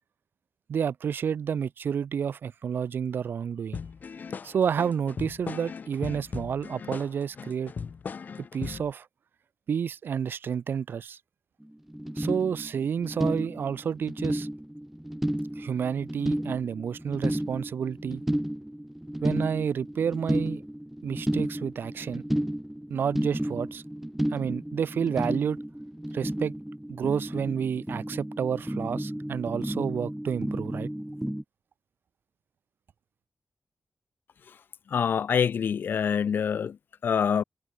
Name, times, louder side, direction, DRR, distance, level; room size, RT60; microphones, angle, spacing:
voice 1, 0.7-3.8 4.4-7.7 8.5-9.1 9.7-11.2 12.2-14.5 15.6-18.2 19.2-20.6 21.0-22.2 22.9-23.8 24.3-25.6 26.1-26.5 26.9-30.9, right 7 dB, 80° right, 0.8 m, -30 dB
sound 1, 3.7-8.9, left 5 dB, 55° left, 1.0 m, -38 dB
sound 2, 11.6-11.7 11.9-31.4, right 1 dB, 5° right, 0.7 m, -32 dB
voice 2, 34.9-36.8 37.0-37.4, left 7 dB, 70° left, 0.4 m, -25 dB
wide cardioid pair, 130°, 4 cm